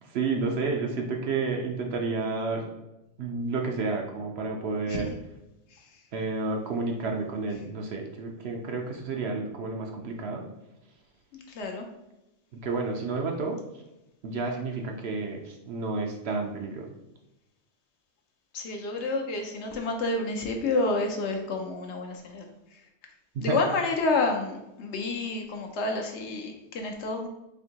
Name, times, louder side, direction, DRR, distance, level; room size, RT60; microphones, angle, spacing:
voice 1, 0.0-2.7 3.2-5.1 6.1-10.5 12.5-13.6 14.2-16.9 23.3-23.6, right 3 dB, 65° right, 2 dB, 0.7 m, -30 dB
voice 2, 18.5-22.5 23.4-27.3, left 3 dB, 65° left, 2 dB, 0.8 m, -29 dB
4.3 x 2.7 x 2.8 m, 0.93 s
omnidirectional pair, 1.3 m